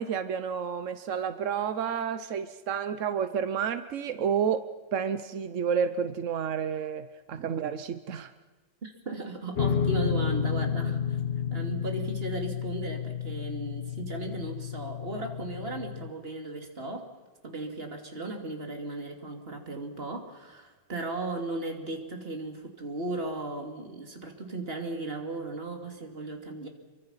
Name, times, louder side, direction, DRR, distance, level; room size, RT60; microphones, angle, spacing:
voice 1, 0.0-4.7 4.9-8.3, right 7 dB, 60° right, 11 dB, 0.8 m, -30 dB
voice 2, 8.8-11.2 11.5-17.1 17.4-26.7, right 2 dB, 25° right, 3 dB, 3.0 m, -36 dB
sound 1, 9.6-16.1, left 7 dB, 70° left, 0.5 m, -31 dB
27.5 x 23.5 x 5.7 m, 1.3 s
omnidirectional pair, 2.3 m